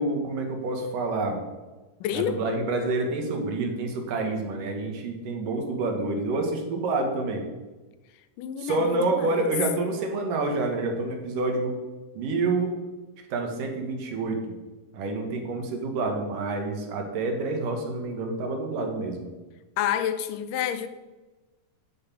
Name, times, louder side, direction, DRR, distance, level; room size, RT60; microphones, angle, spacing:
voice 1, 0.0-1.4 2.1-7.5 8.6-11.8 12.2-12.7 13.3-14.5 14.9-19.2, right 2 dB, 75° right, 3 dB, 3.2 m, -28 dB
voice 2, 2.0-2.4 8.4-8.8 9.1-9.3 19.8-20.9, left 10 dB, 80° left, 11 dB, 2.3 m, -28 dB
9.7 x 6.2 x 8.4 m, 1.2 s
omnidirectional pair, 3.8 m